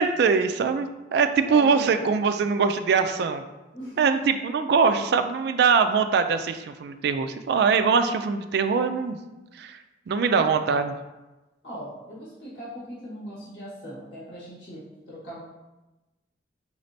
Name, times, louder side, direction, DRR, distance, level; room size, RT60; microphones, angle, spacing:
voice 1, 0.0-3.4 4.0-9.2 9.5-9.8 10.1-10.9, right 5 dB, 65° right, 8 dB, 0.3 m, -22 dB
voice 2, 1.4-2.0 3.7-4.2 11.6-15.4, equal, 80° left, -8 dB, 1.4 m, -39 dB
4.9 x 3.2 x 2.7 m, 1.1 s
head